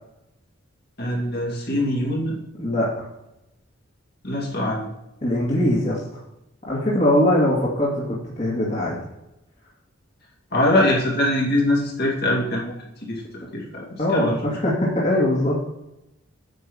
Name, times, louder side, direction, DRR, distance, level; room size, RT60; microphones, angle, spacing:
voice 1, 1.0-2.4 4.2-4.9 10.5-12.7 13.1-13.8 14.1-14.4, left 1 dB, 50° left, -3 dB, 2.6 m, -22 dB
voice 2, 2.6-3.0 5.2-6.2 6.7-9.0 14.0-15.7, left 1 dB, 35° left, -6 dB, 2.3 m, -21 dB
9.4 x 5.6 x 7.1 m, 0.89 s
head